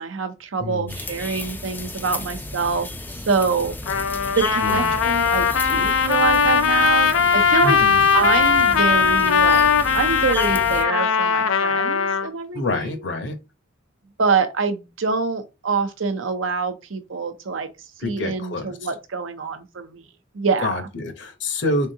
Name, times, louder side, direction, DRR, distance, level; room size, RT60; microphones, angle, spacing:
voice 1, 0.0-3.7 4.4-7.8 8.1-9.7 9.9-13.0 14.2-17.7 18.0-20.0 20.3-20.7, right 5 dB, 75° right, 0.7 m, -25 dB
voice 2, 0.6-1.0 4.6-5.0 7.6-8.0 12.5-13.4 18.0-18.7 20.6-21.9, left 2 dB, 60° left, 0.9 m, -27 dB
sound 1, 0.9-10.8, left 2 dB, 10° left, 0.4 m, -34 dB
Trumpet, 3.9-12.3, left 6 dB, 90° left, 0.5 m, -19 dB
3.6 x 3.6 x 2.8 m
head